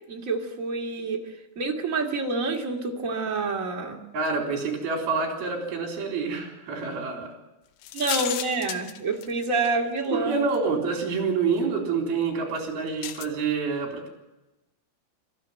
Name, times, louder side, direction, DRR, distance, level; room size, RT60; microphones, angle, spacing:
voice 1, 0.1-1.2 1.6-4.0 7.9-10.4, right 3 dB, 25° right, 1 dB, 2.2 m, -27 dB
voice 2, 4.1-7.3 10.1-14.1, right 5 dB, 60° right, 3 dB, 5.6 m, -27 dB
sound 1, 7.8-9.7 10.6-10.7 13.0-13.3, left 12 dB, 90° left, 3.3 m, -33 dB
26.5 x 14.0 x 9.3 m, 1.0 s
omnidirectional pair, 5.1 m